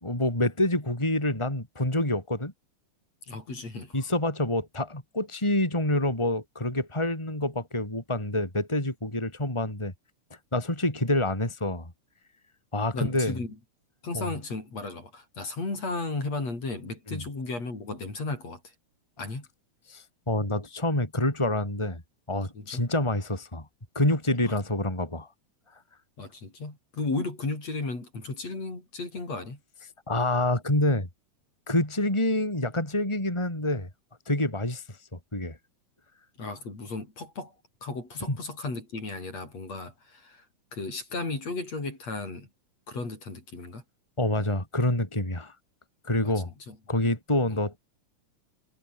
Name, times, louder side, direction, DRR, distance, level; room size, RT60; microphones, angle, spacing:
voice 1, 0.0-2.5 3.9-9.9 10.5-11.9 12.7-13.4 14.1-14.3 17.1-17.2 19.9-22.0 22.3-23.7 23.9-25.3 30.1-31.1 31.7-33.9 34.3-34.8 35.1-35.6 38.3-38.4 44.2-45.5 46.0-46.5 46.9-47.8, left 1 dB, 10° left, 5.0 m, -27 dB
voice 2, 3.3-4.0 12.9-13.6 14.0-18.7 19.2-19.5 22.5-22.8 24.4-24.5 26.2-29.6 36.4-37.5 37.8-40.5 40.7-42.5 42.9-43.8 46.2-46.8 47.5-47.6, left 3 dB, 55° left, 8.4 m, -35 dB
omnidirectional pair, 3.6 m